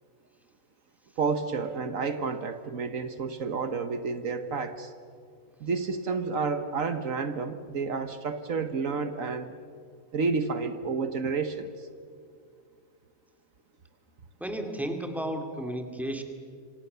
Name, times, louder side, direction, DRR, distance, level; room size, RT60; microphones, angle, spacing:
voice 1, 1.2-4.9 5.6-9.5 10.1-11.9, right 4 dB, 70° right, 9 dB, 1.5 m, -30 dB
voice 2, 14.4-16.2, right 1 dB, ahead, 4 dB, 2.5 m, -33 dB
28.0 x 26.0 x 6.8 m, 2.2 s
omnidirectional pair, 1.5 m